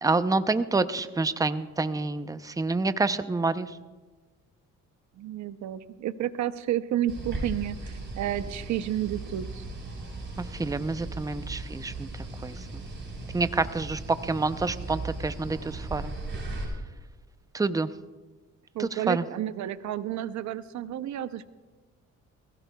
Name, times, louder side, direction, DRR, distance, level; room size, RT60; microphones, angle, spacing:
voice 1, 0.0-3.7 10.5-12.1 12.4-12.5 13.3-16.1 17.5-17.9 18.8-19.2, right 3 dB, 10° right, 12 dB, 0.6 m, -27 dB
voice 2, 5.2-9.6 18.7-21.5, right 12 dB, 70° right, 13 dB, 0.7 m, -31 dB
sound 1, 7.1-16.6, right 2 dB, 40° right, 4.9 m, -37 dB
20.5 x 16.0 x 2.3 m, 1.3 s
cardioid pair, 90°, 30 cm